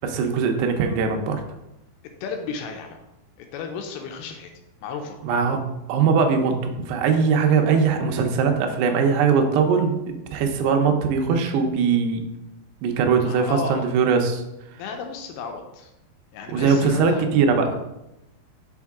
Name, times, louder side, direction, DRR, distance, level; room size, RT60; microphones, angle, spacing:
voice 1, 0.0-1.4 5.2-5.6 5.9-6.5 6.9-12.2 12.8-14.4 16.5-17.7, right 5 dB, 90° right, 4 dB, 2.8 m, -21 dB
voice 2, 2.2-3.0 3.4-4.5 4.8-5.2 13.2-13.9 14.8-15.9 16.3-17.3, left 5 dB, 80° left, 4 dB, 2.3 m, -33 dB
6.3 x 4.4 x 3.6 m, 0.91 s
omnidirectional pair, 4.7 m